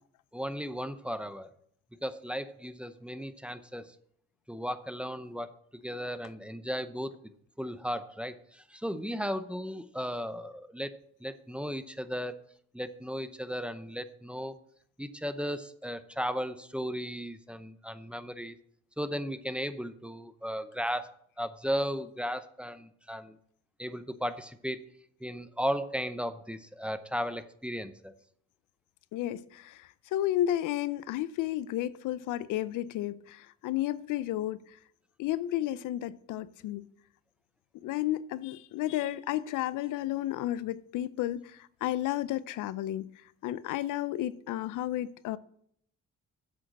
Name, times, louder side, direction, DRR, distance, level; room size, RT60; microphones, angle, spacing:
voice 1, 0.3-1.5 2.0-3.9 4.5-5.5 5.8-7.1 7.6-12.4 12.7-14.5 15.0-18.6 19.0-23.4 23.8-24.8 25.2-28.1, equal, 5° right, 0.6 m, -35 dB
voice 2, 29.1-34.6 35.2-36.8 37.8-43.1 43.4-45.4, left 13 dB, 85° left, 0.5 m, -32 dB
7.8 x 6.3 x 7.6 m
cardioid pair, 90°, 30 cm